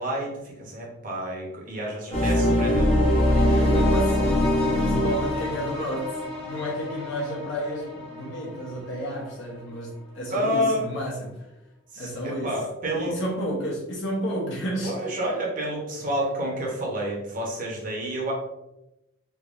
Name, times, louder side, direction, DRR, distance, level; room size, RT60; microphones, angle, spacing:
voice 1, 0.0-2.9 10.3-10.8 11.9-13.2 14.8-18.3, equal, 40° right, -2 dB, 0.8 m, -29 dB
sound 1, 2.1-9.0, left 1 dB, 30° left, 0.8 m, -23 dB
voice 2, 3.3-6.1 6.4-11.3 12.0-12.6 12.9-14.9, equal, 60° left, -4 dB, 0.8 m, -31 dB
3.5 x 2.8 x 2.4 m, 0.94 s
head